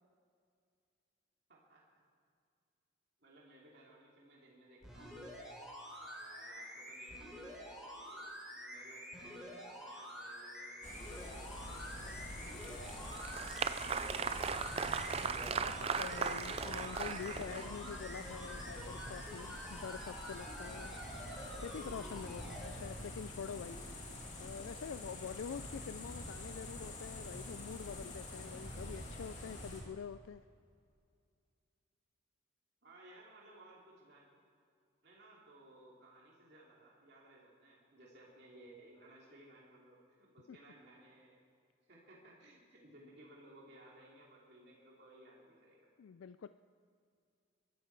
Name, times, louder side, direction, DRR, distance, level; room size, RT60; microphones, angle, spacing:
voice 1, 1.5-1.8 3.2-5.2 5.9-13.0 13.4-14.8 32.8-34.2 35.0-41.4 41.9-45.9, right 1 dB, 55° right, -4 dB, 2.8 m, -60 dB
sound 1, 4.8-22.7 23.3-23.4, equal, 5° right, 3.8 m, -48 dB
sound 2, 10.8-29.8, left 1 dB, 35° left, 2.5 m, -47 dB
Applause, 12.6-17.9, right 6 dB, 30° right, 0.3 m, -38 dB
voice 2, 15.5-20.9 21.6-23.8 24.4-30.4 40.5-40.6 46.0-46.5, left 7 dB, 80° left, 12 dB, 0.4 m, -46 dB
22.0 x 12.5 x 4.7 m, 2.3 s
head